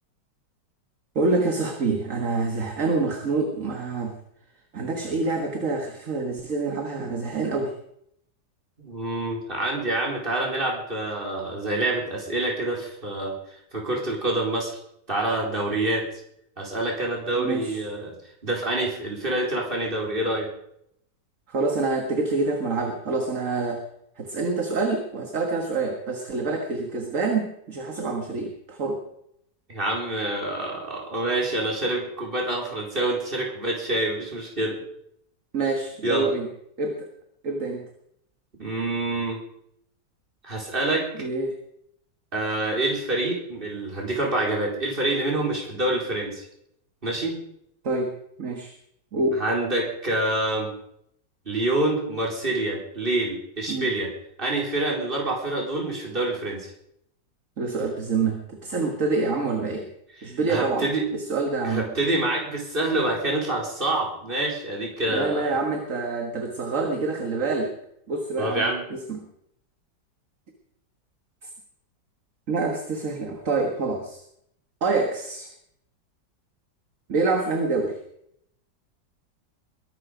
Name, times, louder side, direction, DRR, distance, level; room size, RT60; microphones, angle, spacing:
voice 1, 1.2-4.1 4.7-7.7 17.4-17.8 21.5-23.8 24.2-29.0 35.5-36.5 36.8-37.1 37.4-37.9 41.2-41.6 47.8-48.1 48.4-48.7 49.1-49.4 53.7-53.9 57.6-59.9 60.2-60.9 61.1-61.9 65.1-67.7 68.1-69.2 71.4-71.5 72.5-74.2 74.8-75.5 77.1-78.0, right 3 dB, 45° right, 4 dB, 1.9 m, -26 dB
voice 2, 8.8-13.4 13.7-14.7 15.1-16.1 16.6-18.1 18.4-20.5 29.7-34.8 36.0-36.3 38.6-39.4 40.4-41.2 42.3-46.5 47.0-47.4 49.4-50.7 51.5-54.1 54.4-56.7 60.2-61.0 61.6-65.6 68.4-68.8, right 2 dB, 30° right, -1 dB, 4.5 m, -26 dB
22.0 x 12.0 x 5.1 m, 0.74 s
omnidirectional pair, 1.9 m